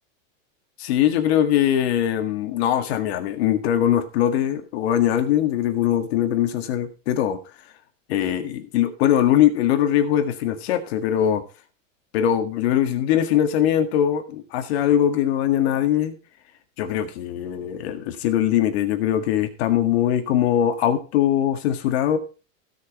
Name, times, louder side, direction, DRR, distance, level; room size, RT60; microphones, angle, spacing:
voice 1, 0.8-7.4 8.1-11.4 12.1-16.1 16.8-22.2, left 10 dB, 50° left, 7 dB, 1.9 m, -21 dB
16.5 x 6.4 x 4.3 m, 0.33 s
supercardioid pair, 175°, 39 cm